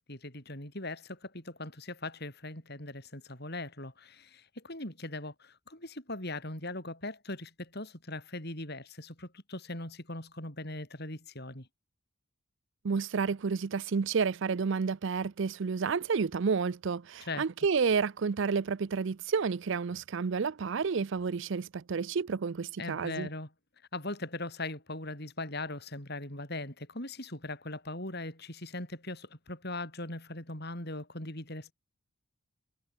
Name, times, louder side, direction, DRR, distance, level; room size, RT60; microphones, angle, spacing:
voice 1, 0.1-11.7 17.2-17.4 22.8-23.5 23.9-31.7, left 2 dB, 50° left, 7.1 m, -40 dB
voice 2, 12.8-23.3, right 5 dB, 55° right, 0.5 m, -30 dB
head